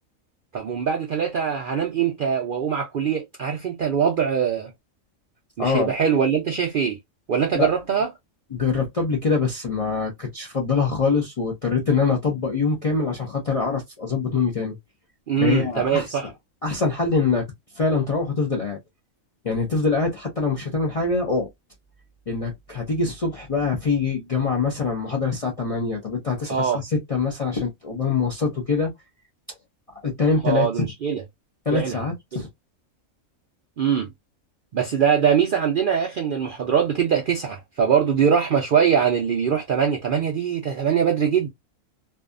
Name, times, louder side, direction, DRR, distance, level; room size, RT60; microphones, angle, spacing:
voice 1, 0.5-4.7 5.6-7.0 7.3-8.1 15.3-16.3 26.5-26.8 30.4-31.2 31.7-32.0 32.3-32.4 33.8-34.1 34.7-41.5, right 7 dB, 65° right, 0.5 m, -22 dB
voice 2, 5.6-5.9 7.5-7.7 8.5-14.8 15.4-16.2 16.6-17.5 17.7-18.8 19.4-21.5 22.3-28.9 30.0-30.9 31.7-32.5, left 4 dB, 45° left, 0.4 m, -24 dB
2.6 x 2.3 x 2.4 m
omnidirectional pair, 1.4 m